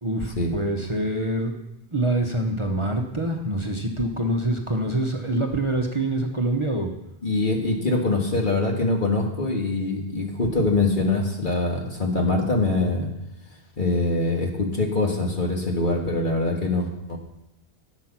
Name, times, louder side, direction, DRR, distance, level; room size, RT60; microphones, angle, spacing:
voice 1, 0.0-1.6 1.9-6.9, right 1 dB, 30° right, 3 dB, 1.0 m, -25 dB
voice 2, 7.2-13.1 13.8-17.2, left 2 dB, 45° left, 0 dB, 1.9 m, -23 dB
12.5 x 7.9 x 6.0 m, 0.88 s
omnidirectional pair, 1.1 m